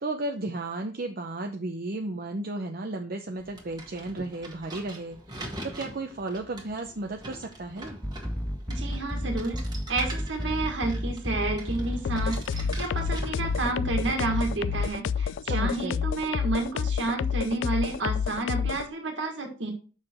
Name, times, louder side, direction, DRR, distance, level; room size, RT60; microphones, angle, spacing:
voice 1, 0.0-8.0 15.4-16.0, right 2 dB, 50° right, 4 dB, 0.7 m, -34 dB
sound 1, 3.4-15.0, right 1 dB, 20° right, 1.7 m, -44 dB
sound 2, 8.0-14.9, equal, ahead, 0.5 m, -32 dB
voice 2, 8.7-9.6 9.9-19.7, right 2 dB, 70° right, 3 dB, 1.7 m, -30 dB
sound 3, 12.0-18.9, left 7 dB, 70° left, 0.3 m, -29 dB
6.8 x 5.9 x 4.4 m, 0.36 s
head